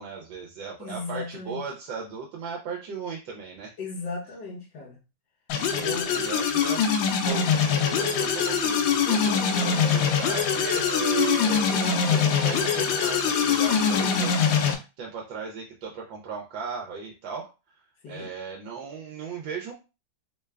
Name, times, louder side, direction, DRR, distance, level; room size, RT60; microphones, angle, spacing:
voice 1, 0.0-3.7 5.5-6.8 7.2-9.3 9.6-17.5 18.1-19.7, right 6 dB, 80° right, 1.4 m, -36 dB
voice 2, 0.8-1.6 3.8-5.0 5.8-6.3 9.2-9.7 18.0-18.3, left 3 dB, 70° left, 1.5 m, -36 dB
sound 1, 5.5-14.7, left 7 dB, 85° left, 1.4 m, -23 dB
sound 2, 7.3-14.2, right 1 dB, 60° right, 1.0 m, -38 dB
3.7 x 2.3 x 3.2 m
omnidirectional pair, 2.0 m